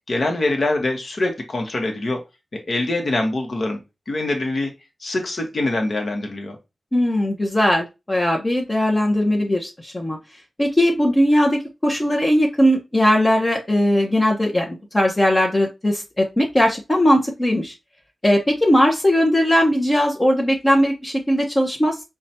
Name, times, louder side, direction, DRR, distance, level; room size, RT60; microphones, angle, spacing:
voice 1, 0.1-2.2 2.5-3.8 4.1-4.7 5.0-6.6, left 2 dB, 60° left, 2 dB, 1.0 m, -24 dB
voice 2, 6.9-10.2 10.6-17.7 18.2-22.0, equal, 25° left, -1 dB, 0.8 m, -19 dB
4.6 x 2.2 x 2.7 m, 0.25 s
cardioid pair, 50°, 0 cm